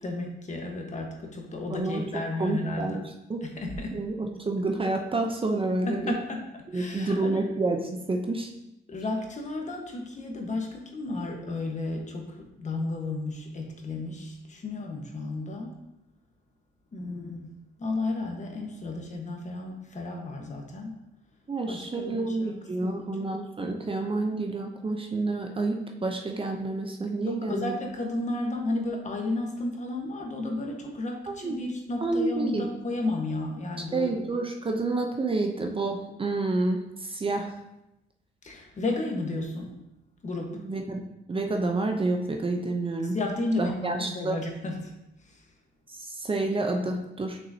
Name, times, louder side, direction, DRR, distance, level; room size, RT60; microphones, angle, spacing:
voice 1, 0.0-3.0 3.4-4.0 5.9-6.4 6.7-7.4 8.9-15.8 16.9-17.5 17.8-21.0 21.7-22.5 22.8-23.3 27.2-34.3 38.4-39.7 40.2-40.6 43.1-44.9 45.3-45.4, left 2 dB, 35° left, 2 dB, 1.3 m, -33 dB
voice 2, 1.7-2.0 2.4-3.4 3.9-6.1 6.7-8.5 21.5-27.7 31.3-31.6 32.0-32.7 33.9-37.5 40.5-41.0 41.3-43.2 43.6-44.4 45.9-47.4, right 2 dB, 25° right, 3 dB, 0.7 m, -29 dB
6.2 x 5.9 x 2.8 m, 0.90 s
cardioid pair, 90°, 20 cm